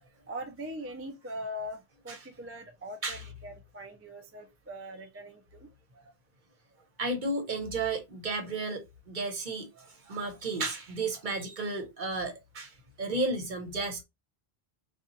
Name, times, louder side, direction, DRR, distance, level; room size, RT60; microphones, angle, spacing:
voice 1, 0.3-5.7, equal, 20° right, 0.3 m, -41 dB
voice 2, 7.0-14.0, right 3 dB, 50° right, 1.0 m, -33 dB
3.8 x 2.4 x 2.7 m
omnidirectional pair, 1.0 m